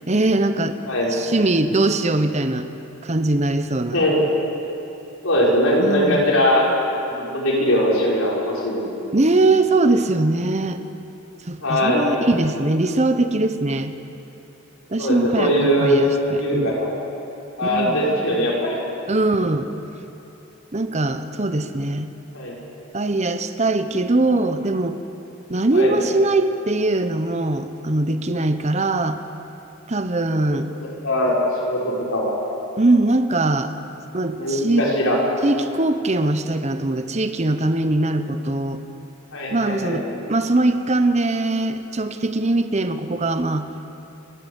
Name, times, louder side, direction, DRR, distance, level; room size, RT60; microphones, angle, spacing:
voice 1, 0.1-0.8 1.1-2.7 3.0-4.0 5.8-6.3 9.1-10.8 11.4-13.9 14.9-16.8 17.6-18.0 19.1-19.7 20.7-22.1 22.9-25.0 25.5-29.2 29.9-30.7 32.8-33.7 34.1-34.9 35.4-38.8 39.5-43.7, right 2 dB, 30° right, 9 dB, 1.0 m, -21 dB
voice 2, 0.9-1.3 3.9-4.2 5.2-6.7 7.1-8.8 11.6-12.1 15.0-16.0 16.3-16.9 17.6-18.8 22.3-22.6 25.7-26.0 31.0-31.4 31.6-32.4 34.3-35.2 39.3-40.0, equal, 75° left, -4 dB, 5.8 m, -20 dB
30.0 x 13.0 x 8.3 m, 2.9 s
head